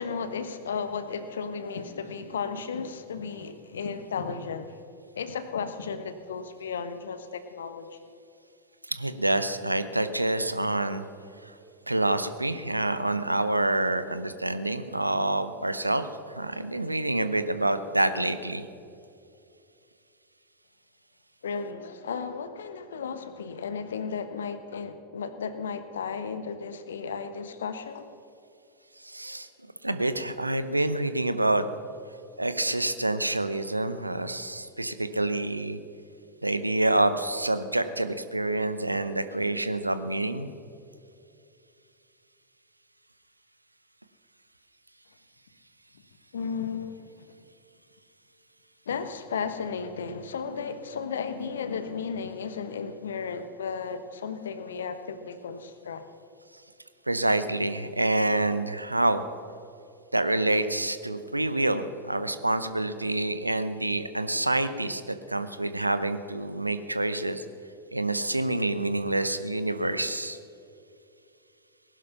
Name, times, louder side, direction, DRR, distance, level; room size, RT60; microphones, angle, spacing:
voice 1, 0.0-4.8 5.2-8.0 21.4-28.1 46.3-47.2 48.9-56.0, left 6 dB, 65° left, 11 dB, 1.1 m, -34 dB
voice 2, 8.9-11.1 11.4-11.5 11.9-18.7 29.0-29.5 29.8-31.7 32.4-35.8 36.4-40.5 57.1-59.2 60.1-67.4 67.9-70.4, right 2 dB, 85° right, 11 dB, 0.8 m, -27 dB
19.0 x 11.0 x 5.8 m, 2.6 s
figure-of-eight pair, 90°, 0 cm